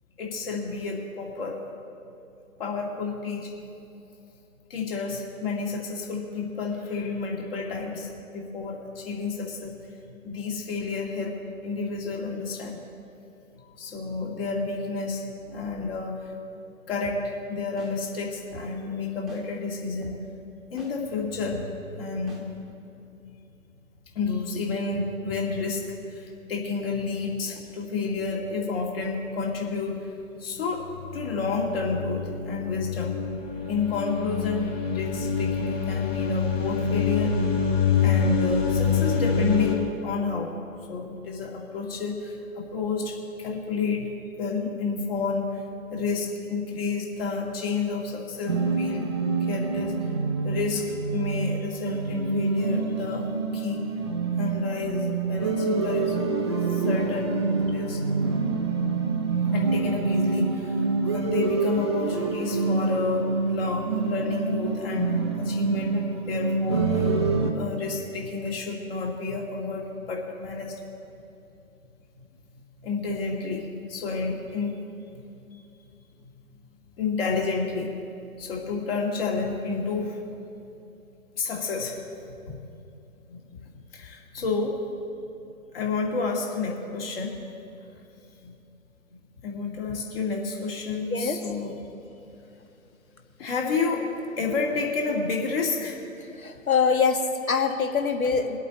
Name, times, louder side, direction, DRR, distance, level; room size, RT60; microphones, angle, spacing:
voice 1, 0.2-1.6 2.6-3.5 4.7-9.8 10.2-12.8 13.8-16.3 16.9-20.1 20.7-22.5 24.1-30.1 30.4-30.9 31.1-33.2 33.7-37.6 38.0-40.5 40.9-44.1 44.4-45.6 45.9-49.1 49.5-50.1 50.4-53.3 53.5-53.9 54.4-58.0 59.5-60.8 61.1-65.1 65.4-67.1 67.5-70.8 72.8-74.8 75.1-75.2 75.5-75.6 76.2-76.3 77.0-77.9 78.4-80.2 81.4-82.0 82.3-82.6 83.3-83.6 83.9-84.8 85.7-87.3 87.7-87.8 88.4-88.5 89.4-91.8 93.4-94.1 94.4-96.0, left 4 dB, 40° left, 0 dB, 2.3 m, -30 dB
sound 1, 17.0-17.2 17.8-17.9 18.5-18.7 19.3-19.4 20.0-20.2 20.8-20.9 21.5-21.7 22.3-22.4, left 1 dB, ahead, 1.1 m, -43 dB
sound 2, 30.8-39.7, left 5 dB, 60° left, 3.2 m, -26 dB
sound 3, 48.5-67.5, right 4 dB, 20° right, 0.5 m, -26 dB
voice 2, 96.4-98.6, left 5 dB, 75° left, 4 dB, 1.8 m, -24 dB
22.0 x 8.4 x 4.1 m, 2.8 s
figure-of-eight pair, 140°, 43 cm